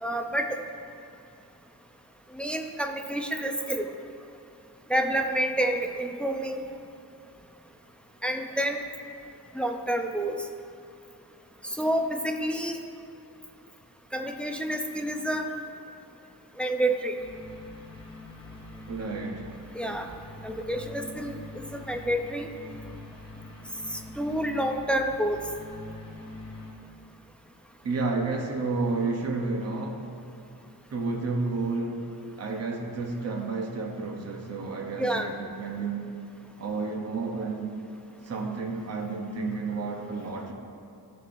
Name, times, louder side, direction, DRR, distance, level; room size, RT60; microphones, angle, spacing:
voice 1, 0.0-0.6 2.3-3.9 4.9-6.6 8.2-8.8 9.5-10.4 11.6-12.8 14.1-15.5 16.6-17.2 19.7-20.1 20.4-22.5 23.9-25.4 35.0-35.3, right 1 dB, 5° left, 4 dB, 0.3 m, -28 dB
sound 1, 17.1-26.7, left 1 dB, 40° left, 2.1 m, -44 dB
voice 2, 18.9-19.5 27.8-30.1 30.9-32.0 32.4-36.1 36.6-37.7 38.2-40.5, right 3 dB, 40° right, 0 dB, 0.8 m, -31 dB
14.5 x 6.7 x 2.6 m, 2.6 s
wide cardioid pair, 165°, 39 cm